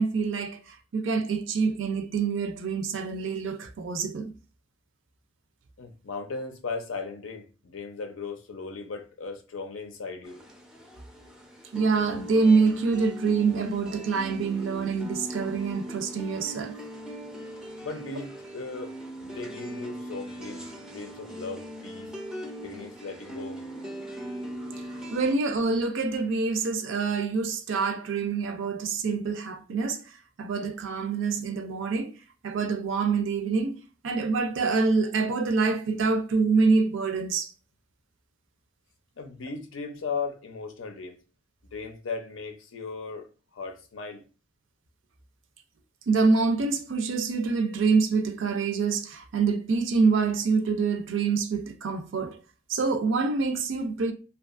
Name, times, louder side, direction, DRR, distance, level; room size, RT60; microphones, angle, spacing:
voice 1, 0.0-4.3 11.7-16.7 25.1-30.0 30.4-32.2 32.4-37.5 46.1-52.4 52.7-54.1, right 4 dB, 70° right, 0.4 m, -26 dB
voice 2, 5.8-10.4 17.8-22.1 22.6-23.6 39.2-41.2 41.7-44.2, left 4 dB, 85° left, 0.5 m, -37 dB
sound 1, 10.2-25.3, equal, 5° right, 0.4 m, -39 dB
2.8 x 2.3 x 2.4 m
head